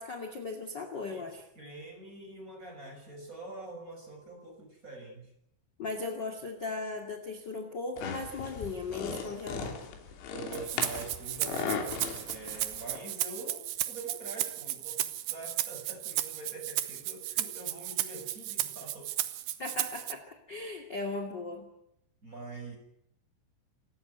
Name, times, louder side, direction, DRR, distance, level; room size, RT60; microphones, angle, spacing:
voice 1, 0.0-1.4 5.8-9.9 19.6-20.2 20.5-21.7, left 3 dB, 40° left, 5 dB, 1.6 m, -37 dB
voice 2, 1.5-5.3 10.3-12.0 12.3-19.4 22.2-22.8, right 3 dB, 15° right, 4 dB, 5.9 m, -45 dB
sound 1, 8.0-13.0, left 6 dB, 90° left, 5.6 m, -38 dB
Rattle (instrument), 10.5-20.1, right 14 dB, 70° right, 2.8 m, -34 dB
28.0 x 15.5 x 9.4 m, 0.77 s
omnidirectional pair, 5.8 m